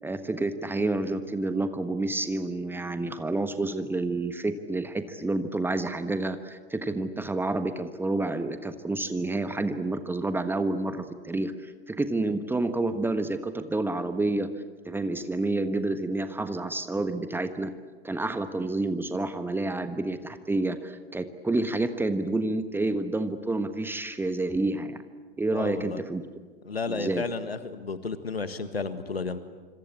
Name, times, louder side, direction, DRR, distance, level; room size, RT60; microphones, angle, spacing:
voice 1, 0.0-14.5 14.8-17.7 18.0-25.0 25.4-26.2 26.9-27.2, right 2 dB, 5° right, 10 dB, 1.3 m, -29 dB
voice 2, 25.5-26.0 26.7-29.4, left 4 dB, 80° left, 11 dB, 1.7 m, -32 dB
26.5 x 26.0 x 8.7 m, 1.4 s
figure-of-eight pair, 95°, 30 cm